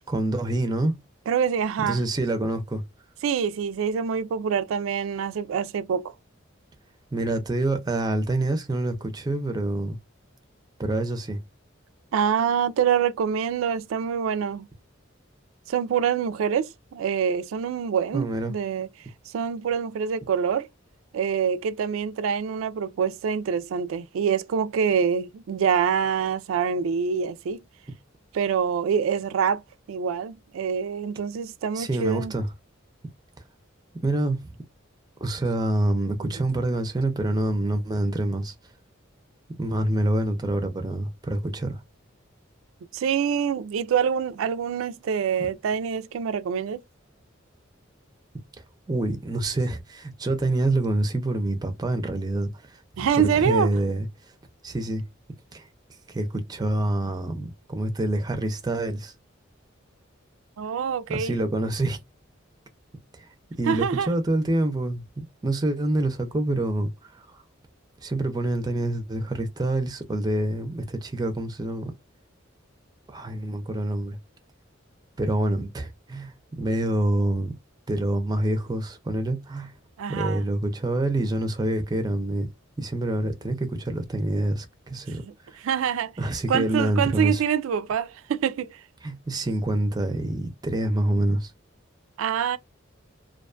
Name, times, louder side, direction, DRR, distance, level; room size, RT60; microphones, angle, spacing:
voice 1, 0.1-0.9 1.9-2.8 7.1-10.0 10.8-11.4 18.1-18.5 31.7-32.5 34.0-34.5 35.2-38.5 39.6-41.8 48.9-54.1 54.6-55.0 55.5-55.7 56.1-59.1 61.1-62.0 63.6-66.9 67.2-67.3 68.0-71.9 73.1-74.2 75.2-77.5 77.9-79.7 80.1-82.5 82.8-85.2 86.2-87.4 89.0-91.5, right 1 dB, 20° right, 0.5 m, -26 dB
voice 2, 1.3-2.0 3.2-6.1 12.1-14.7 15.7-18.9 19.3-20.7 21.1-27.6 28.3-29.6 29.9-32.3 36.2-36.3 42.9-46.8 53.0-53.8 60.6-61.4 63.7-64.1 80.0-80.4 85.2-85.3 85.6-86.1 86.5-88.8 92.2-92.6, right 7 dB, 85° right, 0.3 m, -25 dB
2.5 x 2.2 x 2.4 m
head